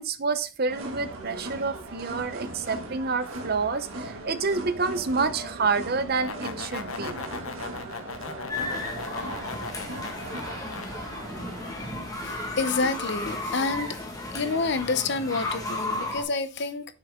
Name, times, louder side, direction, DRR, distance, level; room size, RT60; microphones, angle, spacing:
voice 1, 0.0-7.2, right 4 dB, 45° right, 0.7 m, -28 dB
sound 1, 0.7-12.5, right 2 dB, 80° right, 1.7 m, -39 dB
sound 2, 5.9-10.9, left 4 dB, 80° left, 0.9 m, -38 dB
sound 3, 8.5-16.2, left 2 dB, 15° left, 1.5 m, -34 dB
voice 2, 12.2-14.0 14.3-16.9, left 3 dB, 55° left, 0.7 m, -28 dB
6.6 x 6.4 x 3.6 m
head